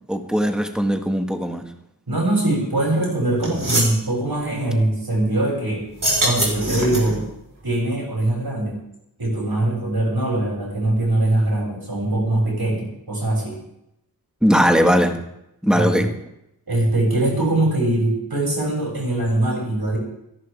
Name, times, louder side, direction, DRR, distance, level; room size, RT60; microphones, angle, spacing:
voice 1, 0.1-1.7 14.4-15.2 15.6-16.1, equal, ahead, 1.9 m, -19 dB
voice 2, 2.1-5.8 6.2-7.2 7.6-8.7 9.2-13.6 15.7-16.1 16.7-20.0, right 1 dB, 85° right, 7.8 m, -22 dB
sound 1, 3.0-3.1 3.4-4.0 5.9-7.2, right 1 dB, 55° right, 5.1 m, -23 dB
28.0 x 11.5 x 3.6 m
wide cardioid pair, 50°, 37 cm